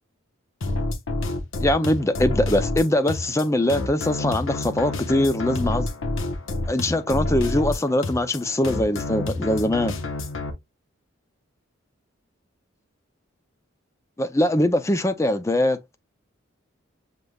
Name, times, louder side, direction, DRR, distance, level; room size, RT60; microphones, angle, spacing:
sound 1, 0.6-10.5, left 2 dB, 75° left, 0.9 m, -28 dB
voice 1, 1.6-5.9 6.7-9.9 14.2-16.0, left 1 dB, 15° left, 0.4 m, -22 dB
6.5 x 3.4 x 2.3 m
head